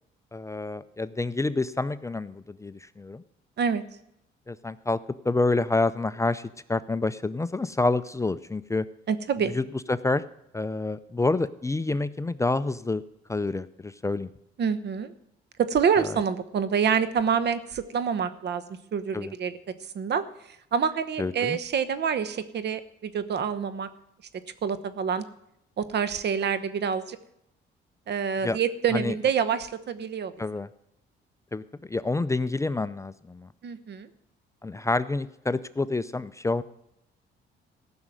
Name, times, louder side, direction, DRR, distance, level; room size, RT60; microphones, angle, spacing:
voice 1, 0.3-3.2 4.5-5.0 5.2-6.4 6.7-8.8 9.5-10.2 10.5-13.0 13.3-14.3 19.1-19.3 21.2-21.6 28.4-28.6 28.9-29.1 30.4-30.7 31.5-31.6 31.9-33.5 34.6-36.6, left 3 dB, 15° left, 14 dB, 0.5 m, -28 dB
voice 2, 9.1-9.5 14.6-15.1 15.6-18.6 18.9-19.5 19.9-20.2 20.7-23.9 24.6-25.2 25.8-27.2 28.1-30.3 33.6-34.1, right 7 dB, 60° right, 13 dB, 1.1 m, -26 dB
15.0 x 6.1 x 9.0 m, 0.80 s
cardioid pair, 90°, 20 cm